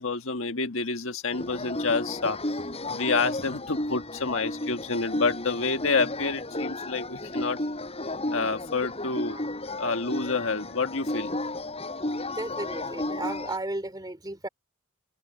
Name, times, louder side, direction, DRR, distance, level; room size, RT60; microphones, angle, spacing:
voice 1, 0.0-2.4 2.9-7.6 8.3-9.4 9.8-11.3, left 4 dB, 65° left, 1.6 m, -28 dB
sound 1, 1.3-13.6, left 1 dB, 30° left, 7.0 m, -33 dB
voice 2, 12.4-14.5, right 2 dB, 20° right, 3.8 m, -34 dB
head